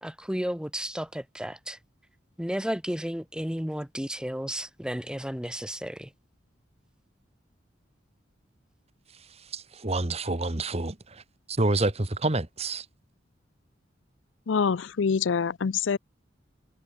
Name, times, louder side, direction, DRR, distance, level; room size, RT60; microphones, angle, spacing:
voice 1, 0.0-1.8 2.4-6.1, equal, 5° right, 1.4 m, -33 dB
voice 2, 9.5-11.2 11.5-12.8, right 2 dB, 35° right, 1.5 m, -28 dB
voice 3, 14.5-16.0, left 6 dB, 85° left, 0.5 m, -25 dB
head